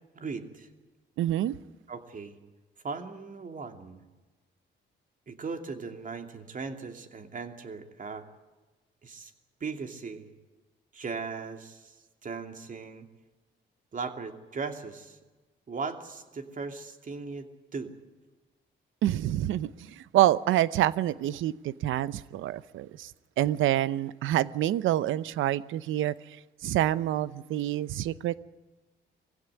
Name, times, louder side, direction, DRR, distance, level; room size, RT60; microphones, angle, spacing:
voice 1, 0.1-0.7 1.9-2.4 2.8-4.0 5.3-8.2 9.0-9.3 9.6-10.3 10.9-11.9 12.2-13.1 13.9-15.2 15.7-17.9, right 4 dB, 40° right, 2.8 m, -38 dB
voice 2, 1.2-1.5 19.0-23.1 23.4-26.1 26.6-28.4, right 13 dB, 85° right, 0.8 m, -27 dB
22.5 x 16.0 x 9.7 m
cardioid pair, 90°, 20 cm